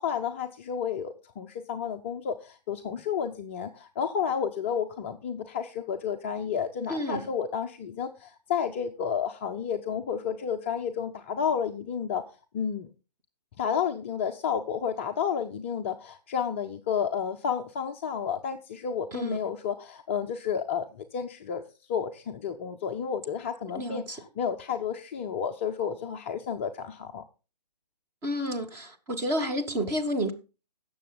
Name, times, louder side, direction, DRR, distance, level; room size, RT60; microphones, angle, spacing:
voice 1, 0.0-12.2 12.5-12.9 13.6-20.9 21.1-21.6 21.9-27.2, left 7 dB, 20° left, 0.5 m, -31 dB
voice 2, 6.9-7.3 19.1-19.4 23.7-24.2 28.2-30.3, equal, 10° right, 1.1 m, -30 dB
16.5 x 6.9 x 3.8 m
figure-of-eight pair, 135°, 21 cm